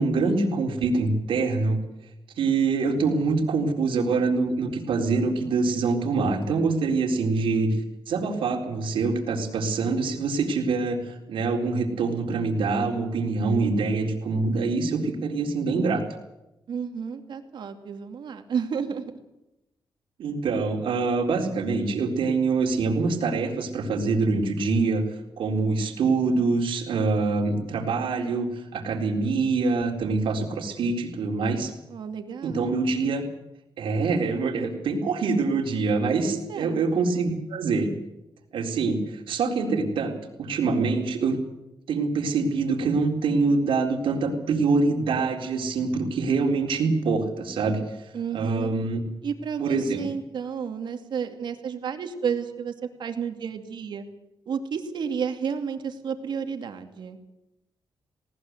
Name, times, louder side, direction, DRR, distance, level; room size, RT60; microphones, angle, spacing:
voice 1, 0.0-1.8 2.4-7.7 8.1-16.0 20.2-25.1 25.4-31.7 32.4-33.2 33.8-37.9 38.5-41.4 41.9-47.8 48.3-49.0 49.6-50.1, right 4 dB, 90° right, 2 dB, 4.1 m, -25 dB
voice 2, 16.7-19.1 31.9-32.8 36.2-36.8 48.1-48.7 49.2-52.7 53.0-54.1 54.5-57.2, right 7 dB, 65° right, 6 dB, 2.5 m, -31 dB
19.5 x 18.5 x 8.1 m, 0.93 s
wide cardioid pair, 170°, 9 cm